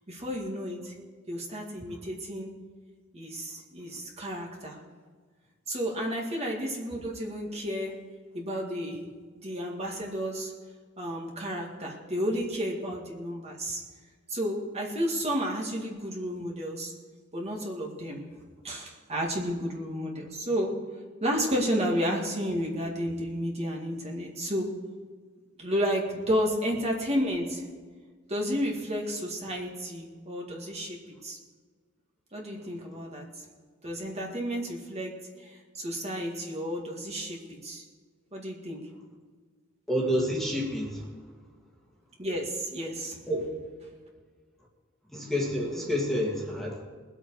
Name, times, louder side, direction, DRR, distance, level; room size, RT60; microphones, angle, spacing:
voice 1, 0.1-0.9 1.3-2.5 3.1-4.8 5.7-7.9 8.3-9.1 9.4-10.5 11.0-13.8 14.3-16.9 17.3-18.2 18.6-20.8 21.2-24.7 25.6-27.6 28.3-31.0 31.2-31.4 32.3-33.4 33.8-35.1 35.4-37.8 38.3-38.8 42.2-43.2, equal, 30° right, -1 dB, 2.1 m, -31 dB
voice 2, 39.9-41.1 43.3-43.5 45.1-46.8, equal, ahead, -2 dB, 2.1 m, -29 dB
21.5 x 8.0 x 4.8 m, 1.5 s
head